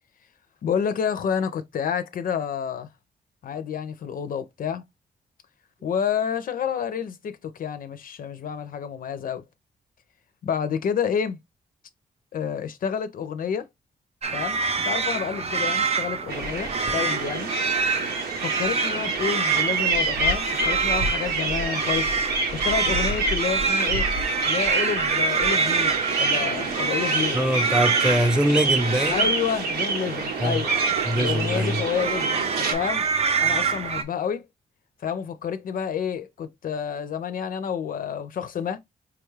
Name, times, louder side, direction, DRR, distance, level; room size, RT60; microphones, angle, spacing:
voice 1, 0.6-2.9 3.4-4.8 5.8-9.4 10.4-11.4 12.3-13.7 14.3-17.5 18.4-24.1 24.4-27.4 29.1-30.7 31.1-34.5 35.0-38.8, left 7 dB, 60° left, 0.5 m, -29 dB
sound 1, 14.2-34.0, right 5 dB, 40° right, 0.6 m, -27 dB
sound 2, 16.3-32.7, right 3 dB, 85° right, 1.0 m, -27 dB
voice 2, 27.3-29.3 30.4-30.6 31.1-31.8, equal, 5° right, 0.7 m, -23 dB
4.8 x 2.3 x 3.1 m
cardioid pair, 105°, 16 cm